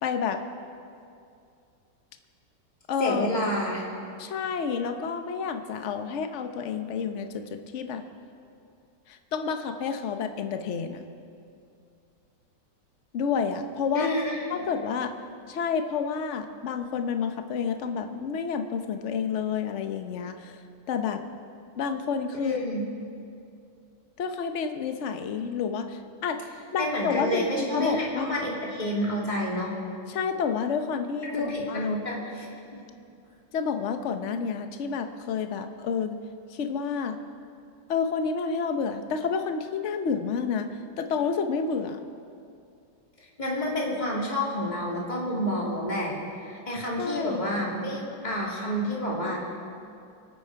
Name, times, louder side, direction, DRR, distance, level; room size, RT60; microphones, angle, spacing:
voice 1, 0.0-0.4 2.9-3.3 4.2-8.0 9.1-11.0 13.1-14.1 14.5-15.2 15.5-20.6 20.9-21.2 21.8-22.7 24.2-26.4 26.7-28.4 30.1-31.3 31.7-32.0 33.5-36.2 36.5-37.2 37.9-40.7 41.0-42.0 47.0-47.5, left 6 dB, 50° left, 7 dB, 1.0 m, -29 dB
voice 2, 3.0-3.8 13.9-14.6 22.4-22.8 26.8-29.7 31.2-32.5 32.7-32.8 43.4-46.2 46.5-49.4, equal, 20° left, -4 dB, 2.6 m, -29 dB
26.0 x 9.0 x 4.6 m, 2.5 s
omnidirectional pair, 2.1 m